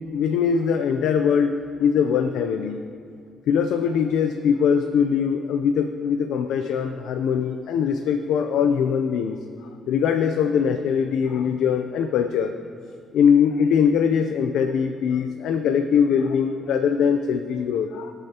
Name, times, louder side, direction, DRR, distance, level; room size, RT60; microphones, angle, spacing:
voice 1, 0.1-2.8 3.5-9.4 9.9-12.5 13.1-18.1, left 7 dB, 80° left, 7 dB, 0.5 m, -22 dB
20.0 x 7.0 x 2.9 m, 2.2 s
cardioid pair, 90°, 0 cm